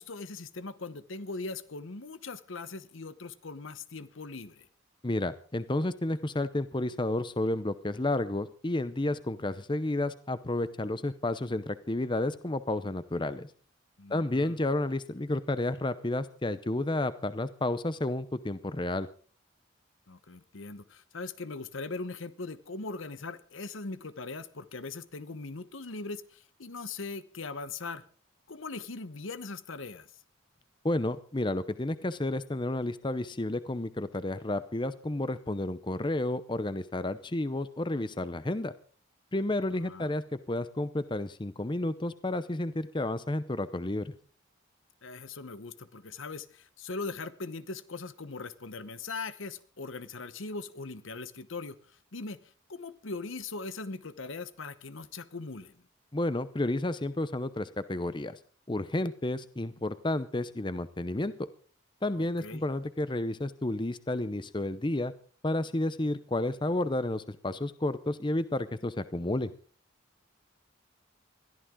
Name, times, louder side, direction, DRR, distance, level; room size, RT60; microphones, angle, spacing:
voice 1, 0.0-4.7 14.0-14.6 20.1-28.0 28.5-30.1 39.6-40.1 45.0-51.8 52.1-52.4 52.7-55.9 62.1-62.6, left 3 dB, 75° left, 14 dB, 1.0 m, -40 dB
voice 2, 5.0-13.5 14.1-19.1 30.8-38.7 39.3-44.1 56.1-58.4 58.7-61.5 62.0-65.1 65.4-69.5, left 1 dB, 25° left, 13 dB, 0.7 m, -31 dB
21.5 x 14.0 x 3.8 m, 0.42 s
head